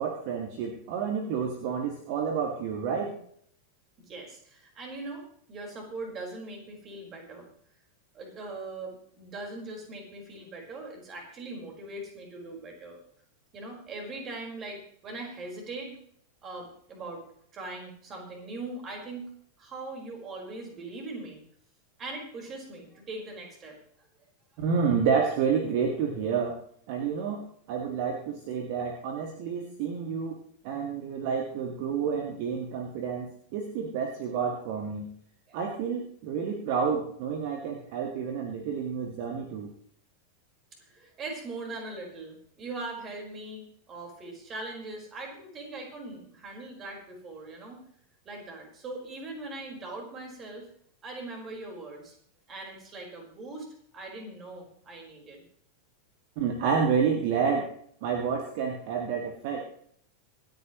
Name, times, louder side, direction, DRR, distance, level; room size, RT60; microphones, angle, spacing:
voice 1, 0.0-3.2 24.6-26.6 26.9-27.4 27.7-30.4 30.6-35.1 35.5-39.7 56.4-57.6 58.0-59.7, right 6 dB, 45° right, 3 dB, 2.0 m, -29 dB
voice 2, 4.1-7.5 8.1-13.0 13.5-16.0 16.4-19.3 19.6-21.4 22.0-24.1 35.5-35.6 40.8-47.8 48.2-50.7 51.0-52.1 52.5-53.7 53.9-55.4, right 2 dB, 25° right, 1 dB, 4.8 m, -41 dB
26.5 x 9.6 x 3.1 m, 0.63 s
figure-of-eight pair, 90°, 0 cm